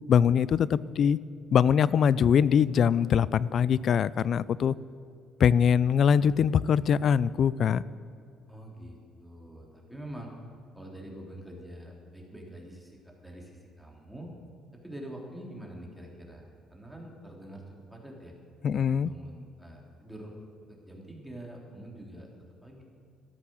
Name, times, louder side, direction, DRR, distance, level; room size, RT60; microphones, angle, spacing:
voice 1, 0.1-1.2 1.5-4.7 5.4-7.8 18.6-19.1, left 7 dB, 55° left, 20 dB, 0.4 m, -23 dB
voice 2, 8.5-10.3 10.7-14.3 14.7-18.3 18.7-20.3 20.7-22.3 22.6-22.8, right 1 dB, ahead, -1 dB, 3.6 m, -45 dB
13.5 x 12.5 x 6.4 m, 2.4 s
supercardioid pair, 75°, 0 cm